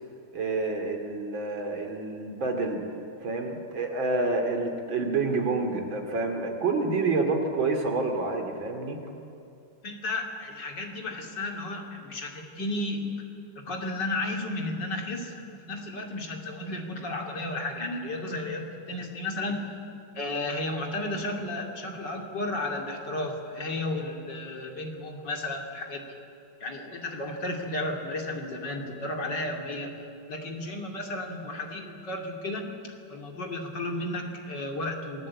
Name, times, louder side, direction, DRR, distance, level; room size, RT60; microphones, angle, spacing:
voice 1, 0.3-2.8 3.2-9.0, right 3 dB, 85° right, 4 dB, 3.5 m, -28 dB
voice 2, 9.8-13.1 13.7-15.3 15.6-19.6 20.2-26.0 26.6-29.9 30.3-32.7 33.1-35.3, left 2 dB, 65° left, 2 dB, 3.5 m, -33 dB
27.5 x 20.0 x 8.6 m, 2.6 s
omnidirectional pair, 2.1 m